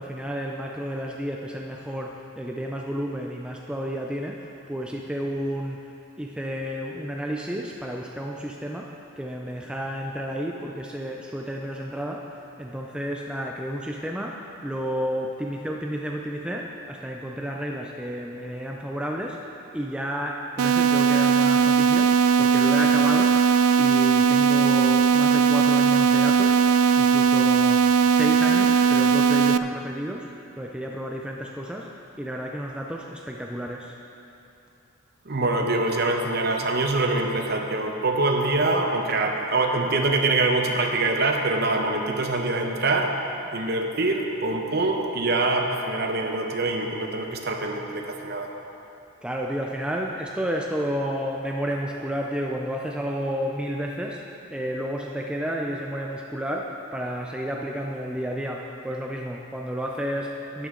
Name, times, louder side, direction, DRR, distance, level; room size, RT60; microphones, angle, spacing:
voice 1, 0.0-5.8 6.2-12.2 12.6-23.4 23.8-26.7 27.0-30.3 30.6-31.9 32.2-33.9 49.2-54.2 54.5-60.7, equal, 5° right, -1 dB, 0.4 m, -31 dB
sound 1, 20.6-29.6, right 6 dB, 85° right, 0.3 m, -19 dB
voice 2, 35.3-43.1 43.5-48.5, right 2 dB, 45° right, 2 dB, 0.8 m, -24 dB
11.5 x 9.3 x 3.8 m, 2.8 s
head